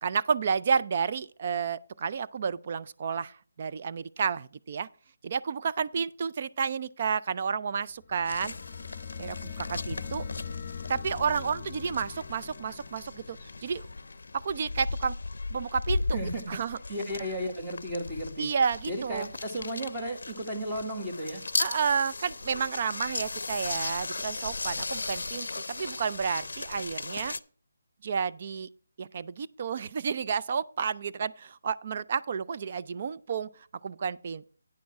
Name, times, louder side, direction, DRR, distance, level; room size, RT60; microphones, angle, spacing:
voice 1, 0.0-4.9 5.2-8.5 9.2-10.3 10.9-13.9 14.3-15.2 15.5-16.8 18.4-19.3 21.6-27.3 28.0-28.7 29.0-34.5, right 6 dB, 30° right, 0.3 m, -31 dB
sound 1, 8.0-14.7, left 6 dB, 30° left, 0.5 m, -42 dB
sound 2, 8.3-27.4, left 3 dB, 80° left, 0.5 m, -37 dB
voice 2, 16.1-16.6 16.9-18.5 18.9-21.4, equal, 10° right, 1.3 m, -34 dB
9.5 x 6.3 x 4.7 m
hypercardioid pair, 175°, 0 cm